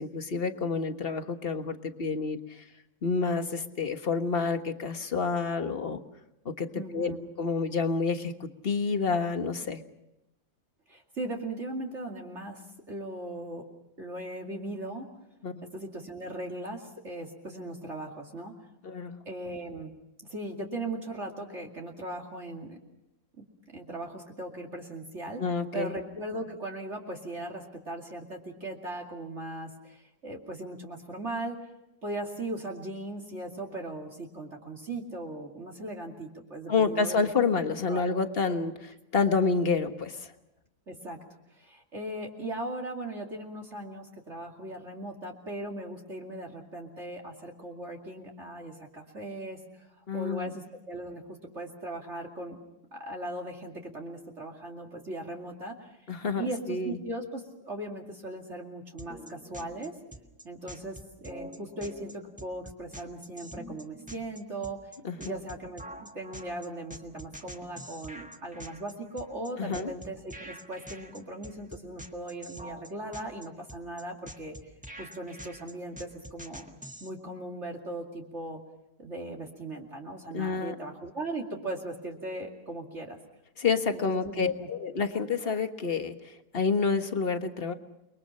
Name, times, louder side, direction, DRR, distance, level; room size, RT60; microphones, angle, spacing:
voice 1, 0.0-2.6 3.0-6.0 6.4-9.8 15.4-15.6 18.8-19.2 25.4-25.9 36.7-40.3 50.1-50.5 56.1-57.0 65.0-65.3 69.6-69.9 80.3-80.8 83.6-87.7, left 4 dB, 40° left, 7 dB, 1.6 m, -29 dB
voice 2, 6.8-7.2 10.9-13.6 14.0-15.1 15.6-18.5 19.3-19.9 20.3-22.8 23.4-23.5 23.7-25.4 25.7-31.6 32.0-37.3 37.9-38.1 40.9-41.2 41.5-52.6 52.9-60.0 60.4-64.8 65.2-74.7 75.0-76.7 77.0-78.6 79.0-83.2 83.9-84.7, right 1 dB, 45° right, 3 dB, 2.8 m, -38 dB
sound 1, 59.0-77.1, right 1 dB, 5° right, 1.5 m, -46 dB
30.0 x 23.0 x 5.8 m, 0.87 s
omnidirectional pair, 1.6 m